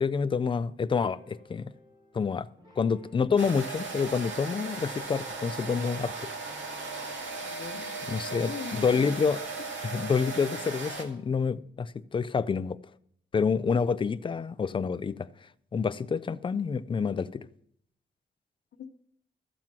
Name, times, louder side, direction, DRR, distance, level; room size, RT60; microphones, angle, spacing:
voice 1, 0.0-1.7 2.1-2.5 2.8-6.1 8.1-9.4 9.8-12.8 13.3-15.3 15.7-17.5, left 5 dB, 25° left, 0.4 m, -28 dB
sound 1, 0.9-8.6, equal, 20° right, 3.7 m, -57 dB
sound 2, 3.4-11.0, right 3 dB, 85° right, 1.9 m, -37 dB
voice 2, 7.5-9.2 18.8-18.9, left 7 dB, 65° left, 0.8 m, -41 dB
13.5 x 7.4 x 6.1 m
wide cardioid pair, 160°, 19 cm